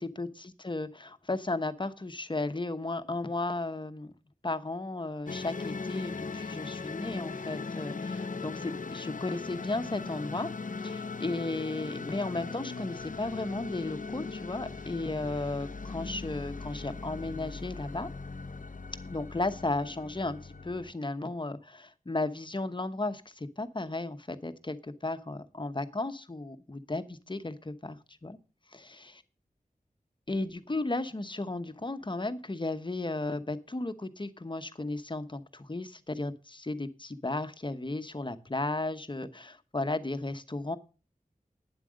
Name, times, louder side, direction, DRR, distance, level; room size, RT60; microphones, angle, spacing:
voice 1, 0.0-4.1 4.4-10.5 10.8-18.1 19.1-28.4 30.3-40.8, left 2 dB, 35° left, 11 dB, 1.0 m, -34 dB
sound 1, 5.3-20.9, left 4 dB, 65° left, 0.6 m, -39 dB
9.8 x 7.6 x 6.3 m, 0.35 s
wide cardioid pair, 55°, 15 cm